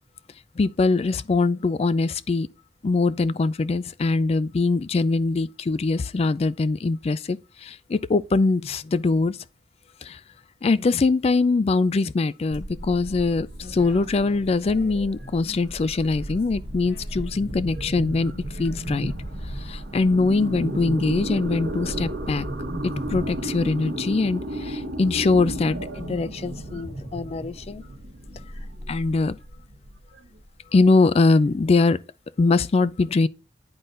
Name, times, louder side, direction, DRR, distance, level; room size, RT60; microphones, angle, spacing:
voice 1, 0.6-2.5 2.8-9.4 10.0-10.2 10.6-19.1 19.6-22.5 22.8-27.8 28.9-29.4 30.7-32.0 32.4-33.3, left 3 dB, 35° left, 0.3 m, -22 dB
sound 1, 12.5-15.4 15.7-23.4, right 1 dB, 60° left, 1.5 m, -39 dB
sound 2, 12.9-30.7, right 1 dB, 70° right, 1.4 m, -34 dB
11.0 x 3.9 x 2.5 m
head